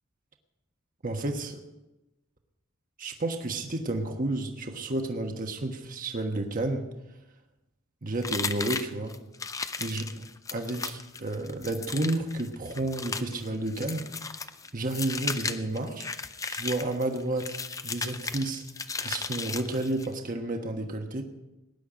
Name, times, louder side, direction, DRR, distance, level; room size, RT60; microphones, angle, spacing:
voice 1, 1.0-1.6 3.0-6.9 8.0-9.1 9.8-10.0 10.5-14.1 14.7-16.1 16.5-17.5 17.8-18.6 19.0-21.2, right 2 dB, 40° right, 4 dB, 1.3 m, -31 dB
sound 1, 8.2-20.1, left 4 dB, 15° left, 0.5 m, -35 dB
19.0 x 10.5 x 5.1 m, 0.99 s
head